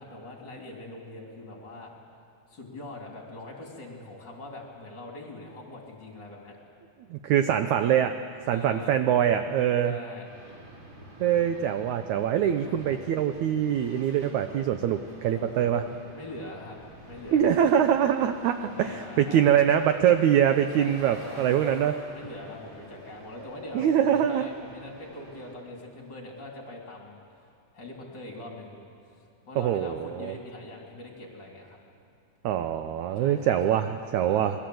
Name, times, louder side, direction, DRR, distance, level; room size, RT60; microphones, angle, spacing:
voice 1, 0.0-1.9 2.5-6.6 8.5-8.9 9.8-10.3 12.6-13.0 15.3-16.8 17.1-17.8 18.6-19.5 20.7-21.8 22.1-27.2 27.7-28.8 29.5-31.8 33.1-34.4, left 1 dB, 30° left, 0 dB, 3.3 m, -43 dB
voice 2, 7.1-8.2 8.5-10.0 11.2-15.8 17.3-22.0 23.7-24.5 29.6-30.3 32.4-34.5, right 9 dB, 80° right, 8 dB, 1.7 m, -24 dB
sound 1, 10.2-25.5, right 1 dB, 30° right, 3.9 m, -48 dB
26.5 x 20.5 x 7.8 m, 2.4 s
omnidirectional pair, 4.1 m